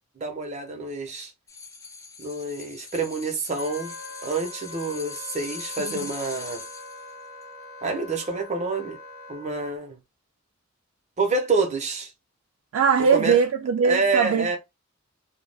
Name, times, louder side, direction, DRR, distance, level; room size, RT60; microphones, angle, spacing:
voice 1, 0.2-1.3 2.2-3.9 4.2-6.6 7.8-9.0 9.3-10.0 11.2-12.1 13.1-13.4 13.8-14.6, right 3 dB, 35° right, 0.6 m, -27 dB
sound 1, 1.5-7.1 7.4-7.5, left 4 dB, 15° left, 0.4 m, -40 dB
Wind instrument woodwind instrument, 3.6-9.7, left 2 dB, 85° left, 0.7 m, -43 dB
voice 2, 12.7-14.5, right 6 dB, 80° right, 0.3 m, -21 dB
2.2 x 2.1 x 3.2 m
head